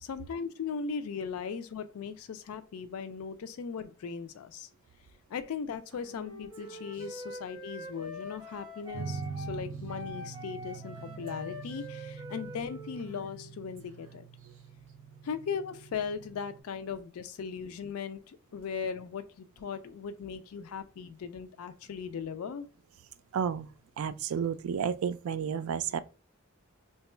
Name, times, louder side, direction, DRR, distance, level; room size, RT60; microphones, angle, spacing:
voice 1, 0.0-4.7 5.3-14.2 15.2-22.7, left 6 dB, 85° left, 0.4 m, -38 dB
Female speech woman speaking / Whispering, 5.9-7.4 8.4-8.8 9.2-9.4 9.7-10.2 10.9-12.0 12.9-14.9, right 4 dB, 60° right, 0.9 m, -59 dB
Wind instrument woodwind instrument, 6.0-13.5, left 2 dB, 20° right, 1.4 m, -44 dB
sound 1, 8.9-16.6, right 5 dB, 20° left, 1.3 m, -43 dB
voice 2, 23.3-23.7 24.0-26.0, right 7 dB, 80° right, 0.3 m, -31 dB
2.9 x 2.3 x 4.2 m
head